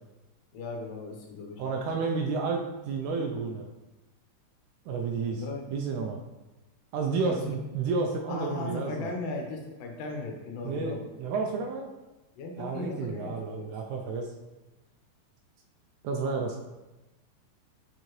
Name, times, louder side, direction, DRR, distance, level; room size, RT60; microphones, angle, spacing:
voice 1, 0.5-1.6 5.3-5.7 7.3-7.6 8.3-11.0 12.4-13.7, left 2 dB, 85° left, 2 dB, 2.5 m, -37 dB
voice 2, 1.6-3.7 4.9-5.4 5.7-6.2 6.9-9.1 10.6-11.9 12.6-14.3 16.0-16.6, right 4 dB, 80° right, 2 dB, 1.9 m, -31 dB
6.4 x 5.7 x 3.1 m, 1.1 s
omnidirectional pair, 3.7 m